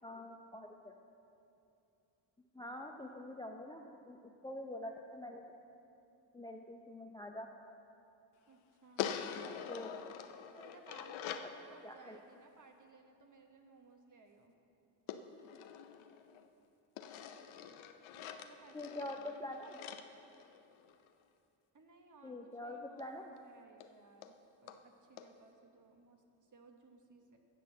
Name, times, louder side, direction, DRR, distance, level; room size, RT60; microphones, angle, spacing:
voice 1, 0.0-0.9 2.5-5.6 6.3-7.5 9.7-9.9 11.8-12.2 18.7-19.8 22.2-23.3, left 1 dB, 10° left, 3 dB, 0.5 m, -45 dB
voice 2, 8.5-9.1 10.5-14.5 18.1-19.5 21.7-24.4 24.6-27.4, right 3 dB, 40° right, 4 dB, 1.2 m, -61 dB
sound 1, 9.0-11.6 15.1-16.5 17.0-21.1 23.0-23.1 23.4-23.5 23.8-23.9 24.2-24.3 24.7-24.8 25.2-25.3, left 8 dB, 75° left, 0.7 m, -45 dB
8.2 x 6.1 x 7.4 m, 2.7 s
supercardioid pair, 70°, 49 cm